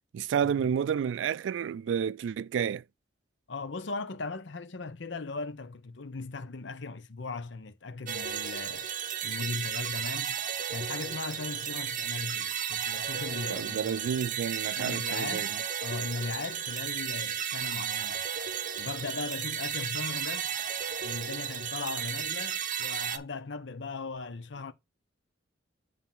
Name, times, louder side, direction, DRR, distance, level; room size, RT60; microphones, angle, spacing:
voice 1, 0.1-2.8 13.5-15.6, right 7 dB, 70° right, 0.3 m, -30 dB
voice 2, 3.5-8.9 9.2-10.4 10.7-14.1 14.8-15.5 15.8-18.2 18.8-20.5 21.0-24.7, left 3 dB, 65° left, 0.8 m, -38 dB
sound 1, 8.1-23.2, right 8 dB, 45° right, 0.7 m, -34 dB
7.2 x 3.5 x 5.7 m
head